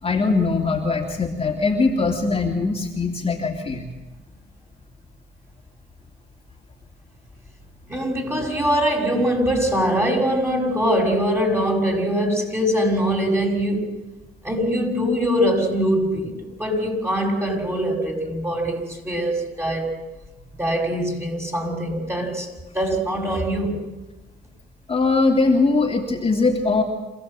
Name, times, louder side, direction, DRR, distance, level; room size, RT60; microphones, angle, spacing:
voice 1, 0.0-3.9 24.9-26.8, left 3 dB, 30° left, 0 dB, 2.9 m, -21 dB
voice 2, 7.9-13.9 14.4-20.0 20.5-22.5 22.7-23.8, equal, 10° right, 2 dB, 6.0 m, -22 dB
27.0 x 16.0 x 7.7 m, 1.1 s
cardioid pair, 90°, 20 cm